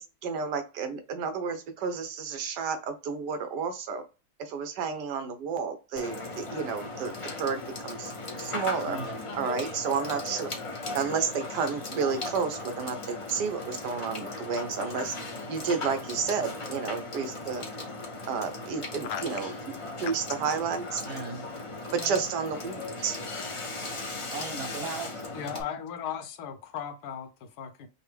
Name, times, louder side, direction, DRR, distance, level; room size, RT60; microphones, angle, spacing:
voice 1, 0.0-4.0 4.4-8.1 8.4-9.0 9.3-10.5 10.9-15.2 15.5-17.6 18.3-19.7 20.0-21.0 21.9-23.2, right 5 dB, 80° right, 1.3 m, -31 dB
Water / Water tap faucet / Sink (filling or washing), 6.0-25.6, left 2 dB, 55° left, 0.3 m, -37 dB
voice 2, 8.8-9.2 21.0-21.5 21.9-22.2 23.6-23.7 24.3-25.3, right 4 dB, 60° right, 1.3 m, -38 dB
voice 3, 25.3-27.9, left 8 dB, 75° left, 1.1 m, -37 dB
5.5 x 2.1 x 3.3 m
omnidirectional pair, 1.8 m